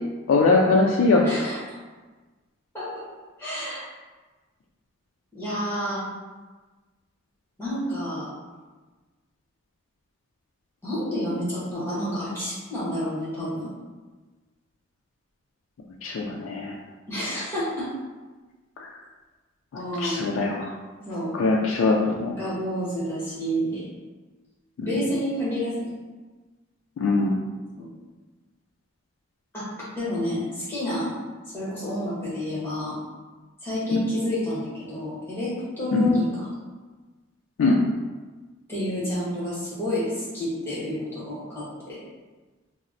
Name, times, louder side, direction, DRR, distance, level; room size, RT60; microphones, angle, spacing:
voice 1, 0.3-1.3 16.0-16.8 18.8-18.9 20.0-20.7 21.3-22.3 24.8-24.9 27.0-27.4 33.9-34.0 35.9-36.2 37.6-37.8, left 3 dB, 75° left, -2 dB, 0.3 m, -21 dB
voice 2, 1.2-1.8 2.7-2.9 3.4-3.9 5.3-6.0 7.6-8.3 10.8-13.7 17.1-17.9 19.7-20.3 21.0-21.3 22.4-23.9 24.8-25.9 27.8-27.9 29.5-29.7 30.0-31.1 31.5-33.0 33.6-36.5 38.7-42.0, equal, 10° left, -9 dB, 1.1 m, -29 dB
4.0 x 2.0 x 2.5 m, 1.3 s
head